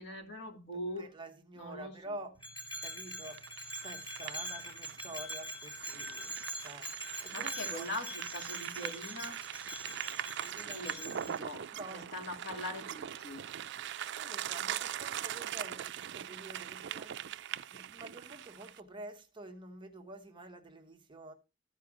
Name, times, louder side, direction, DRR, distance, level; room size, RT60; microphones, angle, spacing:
voice 1, 0.0-1.1 1.6-1.9 7.3-9.4 10.7-11.7 11.9-13.4, left 1 dB, 60° left, 2.8 m, -42 dB
voice 2, 0.9-2.4 2.8-3.5 3.8-6.4 6.6-6.9 7.2-7.9 10.4-11.2 11.7-12.1 14.1-21.3, right 2 dB, 25° right, 1.1 m, -48 dB
Bell, 2.4-11.4, right 1 dB, 20° left, 4.1 m, -43 dB
Bike On Gravel OS, 3.3-18.8, right 10 dB, 60° right, 0.4 m, -41 dB
14.0 x 4.8 x 4.9 m
head